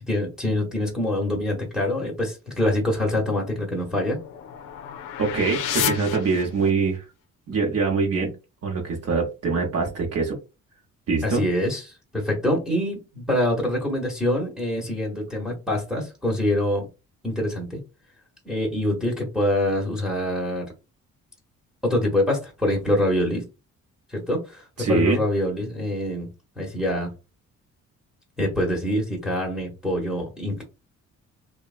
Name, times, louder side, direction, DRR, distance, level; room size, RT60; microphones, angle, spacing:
voice 1, 0.1-4.2 11.2-16.9 17.2-17.8 18.4-20.7 21.8-23.5 24.1-26.3 26.6-27.1 28.4-30.6, left 1 dB, ahead, -2 dB, 0.9 m, -25 dB
sound 1, 3.5-7.0, left 10 dB, 85° left, 0.5 m, -31 dB
voice 2, 5.2-7.1 7.5-8.3 8.6-10.4 11.1-11.4 24.8-25.2, right 4 dB, 55° right, 0 dB, 0.8 m, -23 dB
2.8 x 2.1 x 2.4 m, 0.28 s
cardioid pair, 90°, 30 cm